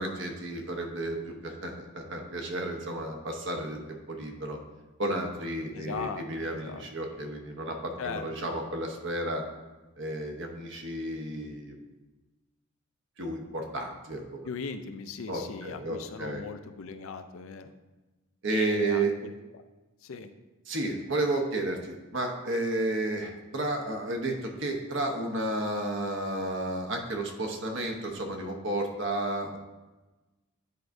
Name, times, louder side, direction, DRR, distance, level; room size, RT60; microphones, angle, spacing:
voice 1, 0.0-4.6 5.0-9.4 10.0-11.8 13.2-14.2 15.3-16.4 18.4-19.1 20.7-29.6, right 2 dB, 55° right, 3 dB, 0.9 m, -32 dB
voice 2, 5.7-6.9 8.0-8.3 14.4-17.7 18.5-19.3 20.0-20.3, left 5 dB, 65° left, 9 dB, 0.4 m, -38 dB
9.8 x 4.6 x 2.6 m, 1.2 s
head